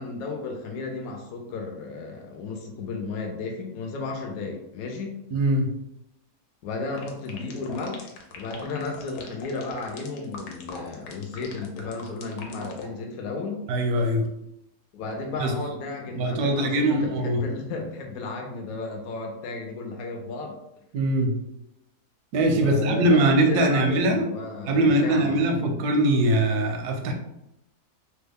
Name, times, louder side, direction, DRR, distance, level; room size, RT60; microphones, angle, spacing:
voice 1, 0.0-5.2 6.6-13.7 14.9-20.6 22.5-25.4, left 3 dB, 75° left, 2 dB, 1.0 m, -34 dB
voice 2, 5.3-5.7 13.7-14.3 15.4-15.5 16.1-17.4 20.9-21.4 22.3-24.2 24.7-27.1, right 1 dB, 85° right, 3 dB, 1.1 m, -22 dB
sound 1, 7.0-12.9, left 4 dB, 90° left, 1.2 m, -41 dB
3.0 x 2.2 x 3.4 m, 0.85 s
omnidirectional pair, 1.6 m